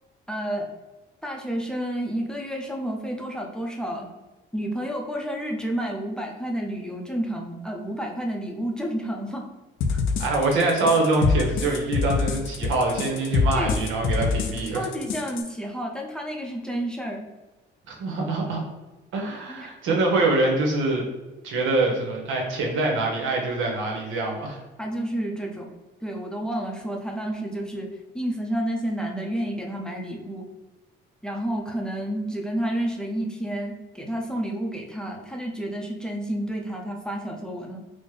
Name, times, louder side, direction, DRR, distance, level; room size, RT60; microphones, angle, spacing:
voice 1, 0.3-0.7 1.2-4.1 4.5-9.4 9.9-10.0 13.5-13.8 14.7-17.3 19.5-19.7 24.8-25.7 26.0-30.5 31.2-37.8, right 1 dB, 5° left, 1 dB, 0.6 m, -30 dB
sound 1, 9.8-15.4, left 4 dB, 85° left, 0.5 m, -25 dB
voice 2, 10.2-14.8 17.9-18.6 19.1-21.0 21.4-24.6, right 2 dB, 85° right, 0 dB, 0.9 m, -24 dB
4.3 x 2.1 x 3.1 m, 1.1 s
cardioid pair, 90°, 20 cm